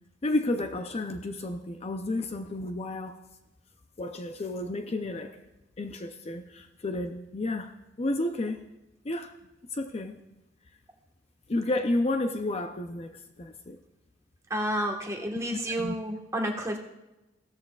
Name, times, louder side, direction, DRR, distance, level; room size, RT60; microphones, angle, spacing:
voice 1, 0.2-3.2 4.0-5.4 5.8-7.7 8.0-8.6 9.0-9.3 9.7-10.2 11.5-13.8 15.8-15.9, left 2 dB, 35° left, 7 dB, 0.5 m, -31 dB
voice 2, 14.5-16.8, equal, 15° right, 1 dB, 1.4 m, -30 dB
16.0 x 13.5 x 2.4 m, 0.98 s
head